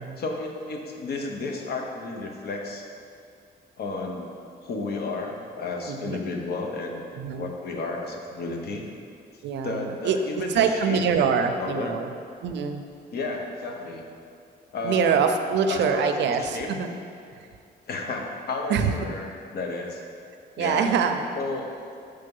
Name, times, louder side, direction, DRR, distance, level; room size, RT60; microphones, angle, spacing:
voice 1, 0.2-2.9 3.8-4.3 4.6-7.0 7.3-8.9 9.6-12.0 13.1-14.0 14.7-15.1 15.7-16.7 17.9-20.0 20.6-20.9 21.4-21.8, left 3 dB, 60° left, 2 dB, 0.8 m, -32 dB
voice 2, 5.9-6.2 7.2-7.5 9.4-10.2 10.5-12.1 12.4-12.8 14.8-16.9 17.3-17.5 18.7-18.9 20.6-21.4, right 6 dB, 80° right, 6 dB, 0.5 m, -24 dB
6.6 x 3.4 x 5.3 m, 2.4 s
cardioid pair, 145°, 18 cm